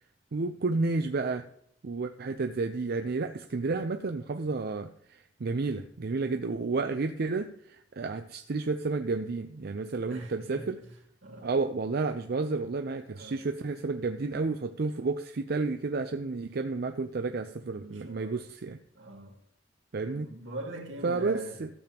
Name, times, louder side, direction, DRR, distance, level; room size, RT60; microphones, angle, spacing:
voice 1, 0.3-1.5 1.8-10.8 11.4-18.8 19.9-20.3 21.0-21.7, right 3 dB, 55° right, 0.5 m, -31 dB
voice 2, 10.1-10.9 11.2-11.5 13.1-13.4 17.7-18.3 18.9-19.4 20.1-21.6, right 1 dB, 80° right, 2.2 m, -43 dB
14.0 x 7.0 x 2.9 m
head